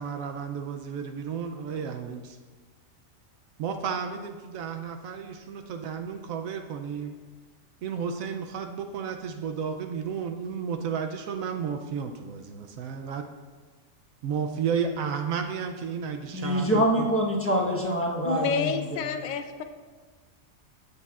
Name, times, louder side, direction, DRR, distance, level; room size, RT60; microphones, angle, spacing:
voice 1, 0.0-2.4 3.6-7.1 7.8-13.3 14.2-17.1, right 6 dB, 85° right, 5 dB, 1.0 m, -32 dB
voice 2, 16.3-19.1, equal, 10° left, -3 dB, 1.1 m, -25 dB
voice 3, 18.2-19.6, left 5 dB, 60° left, 7 dB, 0.5 m, -29 dB
16.0 x 6.7 x 2.4 m, 1.4 s
omnidirectional pair, 1.4 m